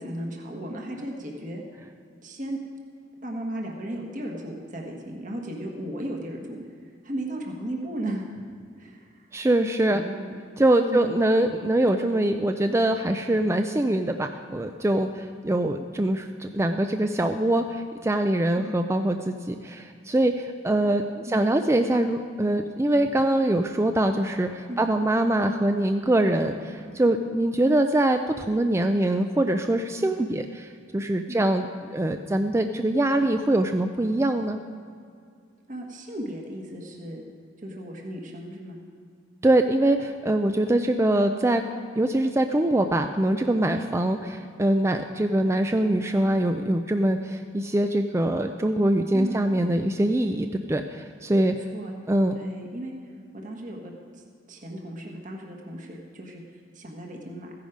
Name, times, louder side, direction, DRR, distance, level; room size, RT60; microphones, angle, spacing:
voice 1, 0.0-1.6 2.2-2.6 3.2-6.6 7.0-8.3 8.8-9.3 9.9-10.4 10.8-11.2 18.6-18.7 21.3-21.5 24.7-24.8 26.2-26.5 27.2-27.3 31.3-31.4 35.7-37.2 37.6-38.8 43.7-43.8 49.1-49.4 51.3-51.9 52.3-52.9 53.3-57.5, right 1 dB, 45° right, 0 dB, 1.4 m, -35 dB
voice 2, 9.3-10.0 10.6-26.5 26.9-34.6 39.4-41.6 42.0-51.6 52.1-52.3, right 1 dB, 15° right, 6 dB, 0.4 m, -23 dB
15.0 x 10.5 x 5.0 m, 2.3 s
head